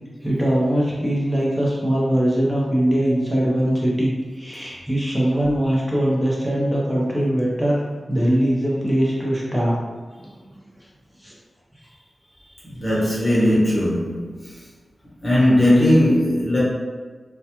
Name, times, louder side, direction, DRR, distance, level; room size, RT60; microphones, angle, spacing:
voice 1, 0.2-7.8 8.1-9.8 11.2-11.3, right 1 dB, 5° right, -6 dB, 0.7 m, -21 dB
voice 2, 12.8-14.3 15.2-16.6, left 1 dB, 35° left, -8 dB, 1.0 m, -18 dB
2.3 x 2.2 x 2.8 m, 1.4 s
wide cardioid pair, 85°, 0 cm